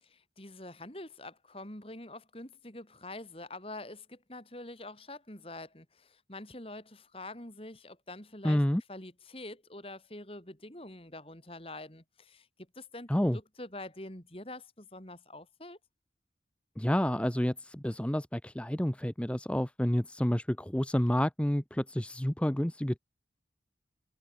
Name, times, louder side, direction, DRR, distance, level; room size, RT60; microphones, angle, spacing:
voice 1, 0.4-8.6 8.9-12.5 12.8-15.8, left 2 dB, 30° left, 3.8 m, -45 dB
voice 2, 8.4-8.8 13.1-13.4 16.8-23.0, equal, 5° left, 0.6 m, -29 dB
head